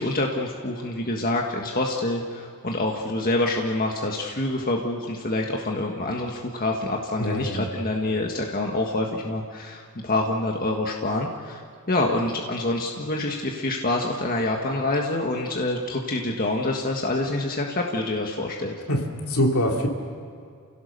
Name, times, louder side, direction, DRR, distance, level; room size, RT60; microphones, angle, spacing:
voice 1, 0.0-18.7, left 2 dB, 40° left, 1 dB, 1.6 m, -26 dB
voice 2, 7.2-7.7 18.9-19.9, equal, 70° left, 1 dB, 3.1 m, -24 dB
29.5 x 17.0 x 6.7 m, 2.3 s
head